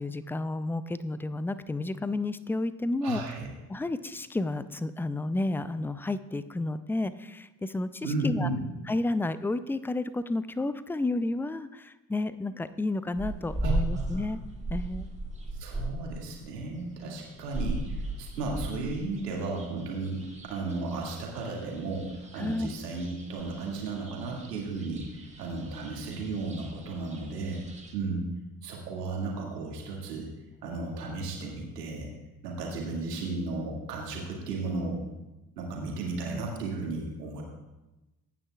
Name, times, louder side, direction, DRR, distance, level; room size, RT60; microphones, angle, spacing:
voice 1, 0.0-3.2 3.7-8.5 8.9-14.4 14.7-15.1 22.4-22.7, left 2 dB, 5° left, 14 dB, 0.5 m, -31 dB
voice 2, 3.0-3.5 8.0-8.7 13.6-14.3 15.5-20.2 20.5-27.6 27.9-28.3 28.6-30.3 30.6-32.1 32.4-35.0 35.6-37.4, right 3 dB, 80° right, -1 dB, 2.3 m, -34 dB
sound 1, 13.2-27.9, right 2 dB, 15° right, 2.5 m, -38 dB
23.0 x 9.3 x 2.4 m, 1.0 s
figure-of-eight pair, 45°, 48 cm